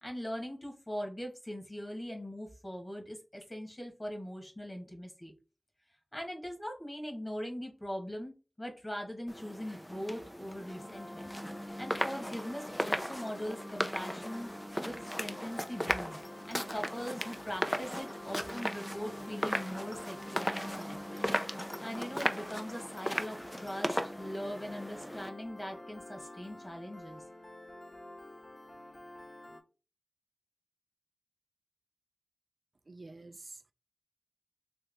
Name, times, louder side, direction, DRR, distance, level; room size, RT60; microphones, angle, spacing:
voice 1, 0.0-5.3 6.1-11.3 11.8-14.5 14.8-16.2 16.5-27.2, equal, 25° left, 1.6 m, -41 dB
sound 1, 9.3-25.3, equal, 5° left, 0.5 m, -37 dB
Piano, 10.6-29.6, left 1 dB, 55° left, 1.7 m, -49 dB
voice 2, 32.9-33.7, right 3 dB, 65° right, 0.4 m, -49 dB
3.5 x 3.2 x 3.5 m
wide cardioid pair, 50°, 0 cm